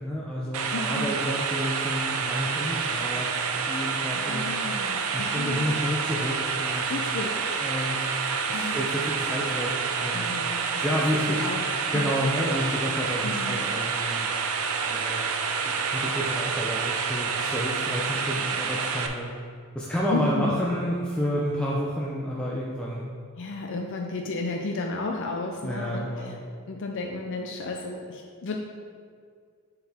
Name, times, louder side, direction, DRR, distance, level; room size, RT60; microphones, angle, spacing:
voice 1, 0.0-4.5 5.1-6.9 7.6-8.0 8.5-9.7 10.0-10.3 10.8-11.4 11.9-14.3 14.9-15.2 15.6-19.3 19.7-23.0 25.6-26.3, equal, 5° left, -5 dB, 0.5 m, -30 dB
sound 1, 0.5-19.1, right 5 dB, 70° right, 0.5 m, -28 dB
voice 2, 0.7-1.2 4.1-5.7 6.9-7.3 8.5-8.8 10.1-11.0 11.3-11.6 11.9-12.2 13.2-13.6 20.1-20.6 23.4-26.3 26.7-28.6, left 3 dB, 60° left, 2 dB, 0.5 m, -33 dB
7.8 x 4.6 x 3.5 m, 2.1 s
head